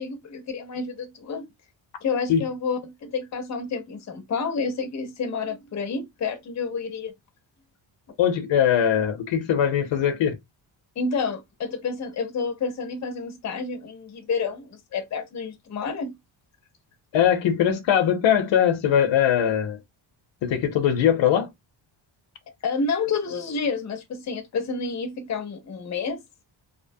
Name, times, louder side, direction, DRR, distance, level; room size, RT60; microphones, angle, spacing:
voice 1, 0.0-1.5 2.0-7.1 11.0-16.2 22.6-26.2, left 4 dB, 35° left, 0.7 m, -29 dB
voice 2, 8.2-10.4 17.1-19.8 20.4-21.5, left 9 dB, 75° left, 0.7 m, -21 dB
2.7 x 2.1 x 2.6 m
wide cardioid pair, 160°, 46 cm